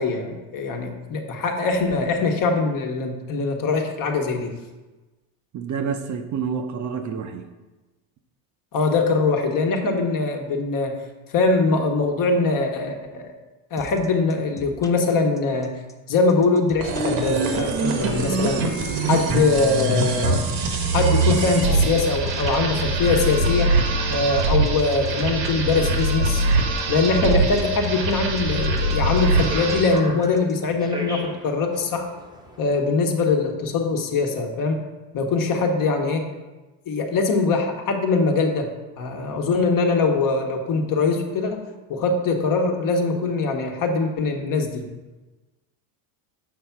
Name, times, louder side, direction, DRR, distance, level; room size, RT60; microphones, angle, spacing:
voice 1, 0.0-4.5 8.7-10.9 11.3-13.4 13.7-15.7 16.1-18.6 19.0-20.5 20.9-23.8 24.1-26.5 26.9-32.1 32.6-34.8 35.1-36.3 36.9-38.7 39.0-41.6 41.9-44.8, left 3 dB, 45° left, 3 dB, 1.2 m, -22 dB
voice 2, 5.5-7.4, right 6 dB, 40° right, 6 dB, 0.7 m, -28 dB
sound 1, 13.8-30.5, left 1 dB, 10° left, 0.5 m, -41 dB
sound 2, 16.8-30.0, right 2 dB, 70° right, 1.3 m, -23 dB
sound 3, 29.3-32.8, right 1 dB, 10° right, 0.9 m, -37 dB
6.6 x 3.5 x 5.8 m, 1.2 s
supercardioid pair, 110°, 44 cm